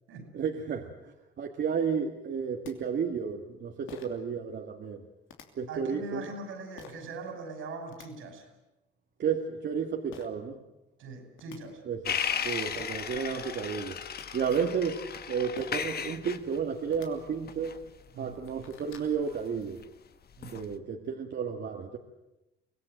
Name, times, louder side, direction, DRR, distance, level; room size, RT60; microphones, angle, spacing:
voice 1, 0.3-5.0 5.6-6.3 9.2-10.6 11.9-14.0 14.3-15.0 15.3-17.8 18.2-19.8 20.5-22.0, right 6 dB, 60° right, 2 dB, 1.9 m, -32 dB
sound 1, 2.3-2.4 2.6-2.7 3.9-4.2 5.3-5.5 6.8-7.0 7.7-8.1 10.1-10.3 11.1-11.2 11.4-11.6 12.5-12.6 12.8-13.0 13.8-14.3 15.6-15.9 16.8-17.1 17.7-17.8 18.2-19.1, left 7 dB, 90° left, 2.9 m, -48 dB
voice 2, 5.7-8.5 11.0-11.8 18.1-18.4 20.4-20.6, right 3 dB, 85° right, 6 dB, 5.7 m, -41 dB
sound 2, 12.1-19.9 20.3-20.8, left 7 dB, 50° left, 1.3 m, -36 dB
24.5 x 18.0 x 9.1 m, 0.95 s
cardioid pair, 90°, 20 cm